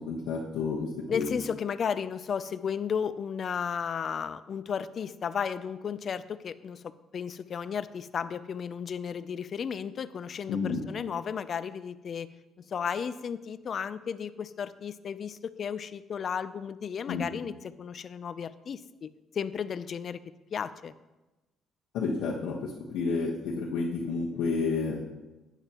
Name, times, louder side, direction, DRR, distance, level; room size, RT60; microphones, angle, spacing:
voice 1, 0.0-1.4 10.5-10.8 17.1-17.3 21.9-25.0, left 4 dB, 85° left, -4 dB, 1.2 m, -30 dB
voice 2, 1.1-12.3 12.7-19.1 19.3-20.2 20.5-20.9, left 7 dB, 45° left, 14 dB, 0.4 m, -34 dB
11.5 x 9.0 x 2.9 m, 1.1 s
cardioid pair, 125°, 0 cm